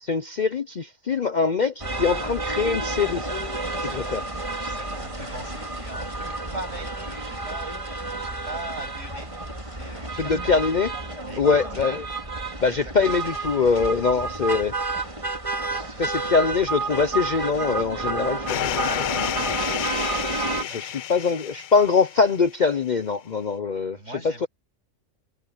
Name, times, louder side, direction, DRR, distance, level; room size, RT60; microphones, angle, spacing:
voice 1, 0.0-3.3 3.9-4.2 10.2-10.9 11.4-12.0 12.6-14.7 16.0-19.4 20.5-24.0, left 5 dB, 45° left, 0.7 m, -23 dB
sound 1, 1.8-20.6, right 3 dB, 25° right, 3.2 m, -30 dB
voice 2, 3.7-4.3 4.6-10.6 11.3-12.0 12.7-13.2 15.7-16.4 20.2-20.3 20.5-20.8 23.9-24.5, right 2 dB, 60° right, 8.2 m, -41 dB
sound 2, 18.5-22.5, left 10 dB, 90° left, 0.4 m, -30 dB
omnidirectional pair, 1.4 m